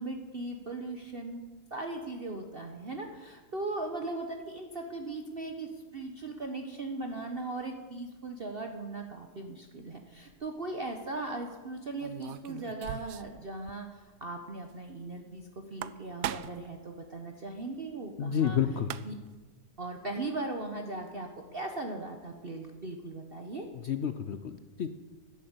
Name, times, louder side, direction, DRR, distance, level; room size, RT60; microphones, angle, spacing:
voice 1, 0.0-1.4 1.7-18.6 19.1-19.2 19.8-23.7, right 2 dB, 40° right, 4 dB, 1.1 m, -38 dB
sound 1, 10.2-10.5 12.0-13.4 13.7-13.8 14.1-14.2 15.6-16.7 18.5-18.6 18.8-19.4, right 11 dB, 70° right, 0.9 m, -39 dB
voice 2, 18.2-18.9 23.7-24.9, left 8 dB, 65° left, 10 dB, 0.7 m, -30 dB
12.0 x 11.0 x 8.0 m, 1.3 s
omnidirectional pair, 1.8 m